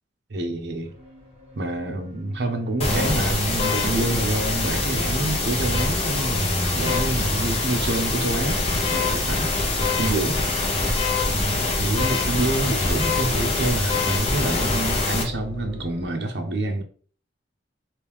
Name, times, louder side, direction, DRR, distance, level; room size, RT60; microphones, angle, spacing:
voice 1, 0.3-0.9 1.6-9.5 10.0-10.4 11.3-16.8, right 2 dB, 65° right, 0.7 m, -27 dB
sound 1, 0.8-16.1, equal, 30° right, 1.1 m, -35 dB
sound 2, 2.8-15.2, left 3 dB, 35° left, 0.7 m, -24 dB
3.2 x 2.6 x 3.4 m
head